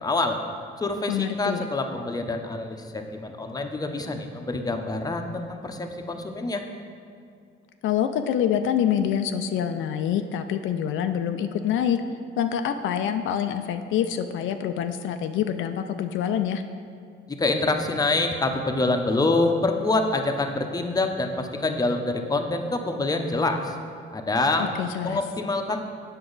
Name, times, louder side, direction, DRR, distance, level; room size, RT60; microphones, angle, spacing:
voice 1, 0.0-0.4 0.8-6.6 17.4-23.7 24.1-24.7 25.0-25.8, left 2 dB, 20° left, 5 dB, 0.7 m, -26 dB
voice 2, 1.1-1.7 7.8-12.0 12.4-16.6 24.6-25.2, left 9 dB, 80° left, 8 dB, 0.4 m, -26 dB
7.8 x 5.9 x 3.9 m, 2.3 s
cardioid pair, 90°, 20 cm